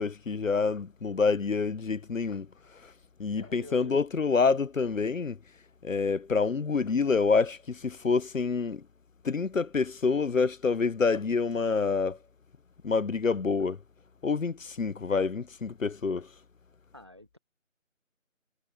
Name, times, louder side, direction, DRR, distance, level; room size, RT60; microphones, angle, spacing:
voice 1, 0.0-2.5 2.7-2.9 3.2-5.4 5.8-8.8 9.2-12.2 12.8-13.8 14.2-16.3, left 4 dB, 75° left, 0.8 m, -27 dB
voice 2, 3.4-4.1 16.9-17.4, left 1 dB, 20° right, 1.2 m, -49 dB
figure-of-eight pair, 170°, 39 cm